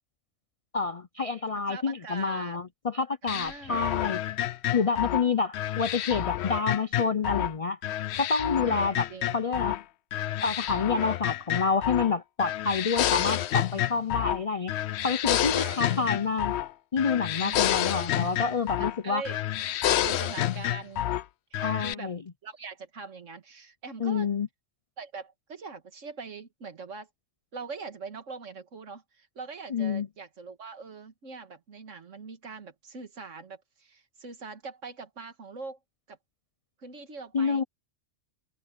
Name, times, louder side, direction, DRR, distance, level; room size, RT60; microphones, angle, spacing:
voice 1, 0.7-4.2 4.7-7.8 8.2-9.1 9.3-9.8 10.4-14.7 15.0-16.6 16.9-19.2 21.6-22.2 24.0-24.5 29.7-30.1 37.3-37.6, left 5 dB, 50° left, 0.4 m, -28 dB
voice 2, 1.7-2.6 3.2-3.9 4.7-5.2 8.6-9.4 13.0-13.5 15.3-16.2 17.4-17.7 18.8-19.4 19.9-21.0 21.5-22.1 22.4-24.3 25.0-27.1 27.5-35.8 36.1-36.2 36.8-37.6, right 4 dB, 75° right, 2.0 m, -42 dB
sound 1, 3.3-7.5 7.8-9.8 10.1-12.1 12.4-14.4 14.7-16.7 17.0-19.0 19.3-21.2 21.5-21.9, left 12 dB, 65° left, 0.8 m, -29 dB
omnidirectional pair, 1.3 m